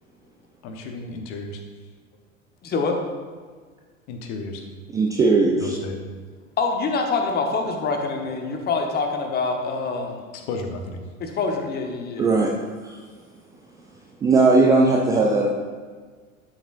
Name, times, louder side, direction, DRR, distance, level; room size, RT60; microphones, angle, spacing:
voice 1, 0.6-1.6 4.1-4.6 5.6-6.0 10.3-11.0, left 3 dB, 40° left, 4 dB, 1.2 m, -33 dB
voice 2, 2.6-3.0 6.6-10.3 11.2-12.3, left 4 dB, 25° left, 3 dB, 1.2 m, -25 dB
voice 3, 4.9-5.8 12.2-12.5 12.8-13.0 14.2-15.5, right 3 dB, 10° right, -1 dB, 0.3 m, -18 dB
12.5 x 7.1 x 2.6 m, 1.5 s
figure-of-eight pair, 85°, 41 cm